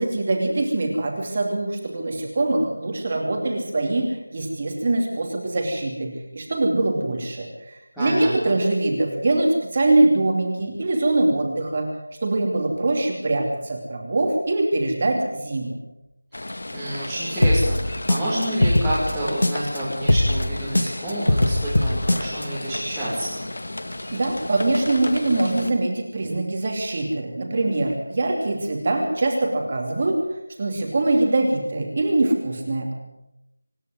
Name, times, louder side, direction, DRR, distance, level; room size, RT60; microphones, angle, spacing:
voice 1, 0.0-11.9 12.2-15.8 24.1-30.2 30.6-32.9, right 2 dB, 20° right, 2 dB, 2.8 m, -23 dB
voice 2, 7.9-8.6 16.7-23.4, right 1 dB, ahead, -17 dB, 2.8 m, -28 dB
sound 1, 16.3-25.7, left 1 dB, 45° left, 1.9 m, -34 dB
sound 2, 17.4-19.8 20.1-22.4, left 1 dB, 70° left, 2.3 m, -20 dB
25.5 x 11.0 x 9.5 m, 0.89 s
figure-of-eight pair, 180°, 0 cm